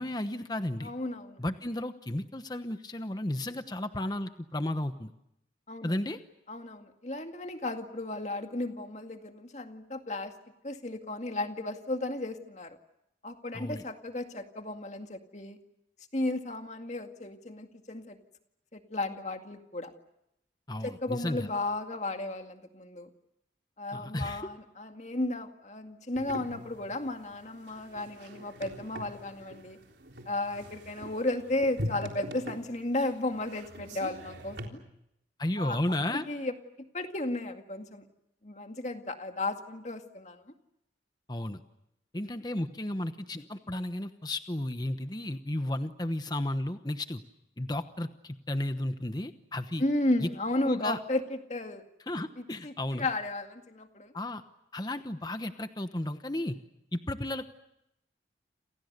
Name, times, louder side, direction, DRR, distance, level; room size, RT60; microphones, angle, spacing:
voice 1, 0.0-0.9 1.4-5.1 5.8-6.2 13.5-13.8 20.7-21.5 23.9-24.5 35.4-36.2 41.3-41.6 42.1-47.2 47.6-49.8 50.2-50.3 50.6-51.0 52.1-53.1 54.1-54.4 54.7-56.6 56.9-57.5, left 1 dB, 20° left, 9 dB, 1.0 m, -33 dB
voice 2, 0.8-1.4 5.7-5.9 6.5-10.3 10.6-12.8 13.2-15.6 16.1-18.2 18.7-19.9 20.8-23.1 23.8-29.8 30.3-34.8 35.6-35.8 36.1-38.0 38.4-40.5 49.8-51.8 52.4-54.1, left 2 dB, 40° left, 5 dB, 2.1 m, -34 dB
sound 1, 26.2-34.7, equal, 75° right, 3.8 m, -42 dB
29.0 x 28.0 x 6.7 m, 0.83 s
head